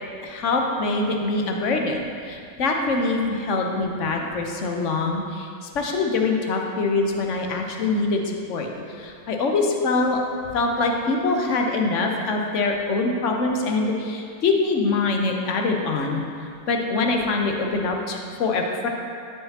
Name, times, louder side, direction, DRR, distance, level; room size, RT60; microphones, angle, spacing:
voice 1, 0.2-10.2 10.5-16.2 16.7-18.9, left 3 dB, 40° left, 2 dB, 0.8 m, -24 dB
8.7 x 4.7 x 2.9 m, 2.3 s
figure-of-eight pair, 90°, 0 cm